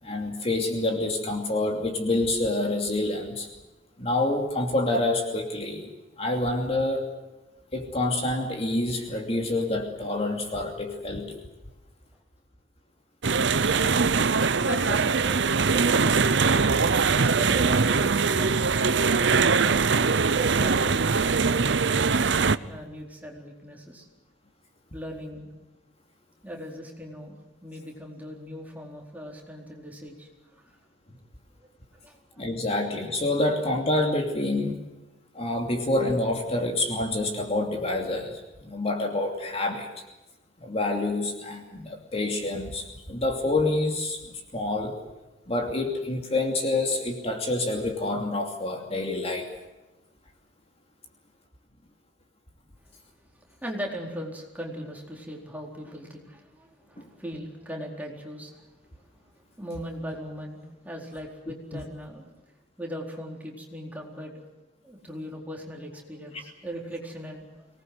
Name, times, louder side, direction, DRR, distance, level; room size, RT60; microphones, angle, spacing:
voice 1, 0.0-3.5 4.0-5.9 6.2-7.1 7.7-11.4 32.4-34.8 35.3-40.0 40.6-45.0 45.5-49.5 57.0-57.1 61.7-61.8, left 2 dB, 35° left, 3 dB, 2.8 m, -27 dB
sound 1, 13.2-22.6, right 4 dB, 70° right, 0.8 m, -22 dB
voice 2, 14.6-15.4 15.7-16.5 17.2-19.3 20.3-22.3 22.6-24.1 24.9-25.5 26.4-30.3 30.5-30.7 32.0-32.5 52.8-52.9 53.3-58.7 59.0-59.1 59.3-62.3 62.8-64.4 64.8-67.7, equal, 10° right, 0 dB, 4.3 m, -39 dB
24.5 x 19.5 x 7.9 m, 1.1 s
head